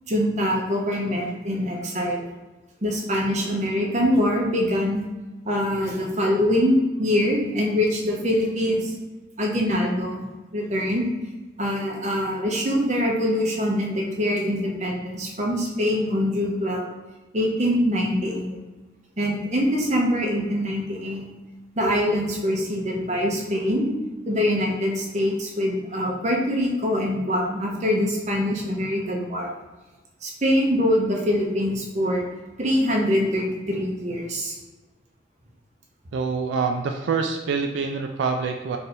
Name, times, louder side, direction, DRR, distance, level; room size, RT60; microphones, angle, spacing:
voice 1, 0.1-2.3 2.8-5.0 5.4-8.9 9.4-10.2 10.5-11.1 11.6-16.9 17.3-18.6 19.2-21.3 21.8-23.9 24.3-29.5 30.2-32.2 32.6-34.6, equal, 40° right, -1 dB, 0.8 m, -24 dB
voice 2, 36.1-38.8, right 5 dB, 85° right, 4 dB, 0.3 m, -26 dB
3.3 x 2.6 x 4.2 m, 1.2 s
head